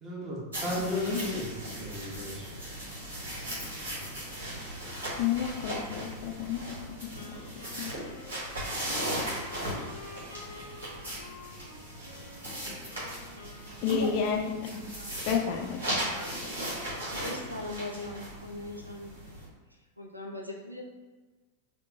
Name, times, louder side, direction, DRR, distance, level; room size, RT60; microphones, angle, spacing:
voice 1, 0.0-2.5, right 1 dB, 25° right, -5 dB, 1.2 m, -36 dB
sound 1, 0.5-19.5, equal, 70° right, 1.4 m, -37 dB
voice 2, 0.8-1.4 5.2-7.9 13.8-14.9 15.3-16.0, left 7 dB, 45° left, 2 dB, 0.4 m, -32 dB
Wind instrument woodwind instrument, 7.2-15.1, left 2 dB, 90° left, 0.6 m, -50 dB
voice 3, 13.9-14.4 15.0-15.2 16.1-16.3 17.1-19.1 20.0-20.8, left 1 dB, 90° right, 0 dB, 0.4 m, -38 dB
4.3 x 2.2 x 2.7 m, 1.3 s
figure-of-eight pair, 90°, 0 cm